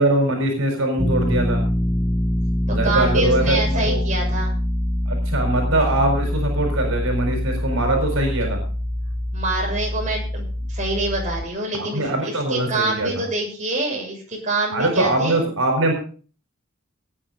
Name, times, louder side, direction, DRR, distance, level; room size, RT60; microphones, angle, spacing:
voice 1, 0.0-1.6 2.7-4.0 5.1-8.6 11.8-13.1 14.7-15.9, right 2 dB, 80° right, 3 dB, 4.7 m, -22 dB
sound 1, 1.0-11.5, left 1 dB, 10° left, 0.6 m, -24 dB
voice 2, 2.7-4.5 9.3-15.4, right 2 dB, 35° right, 0 dB, 6.9 m, -26 dB
18.5 x 9.5 x 4.0 m, 0.41 s
head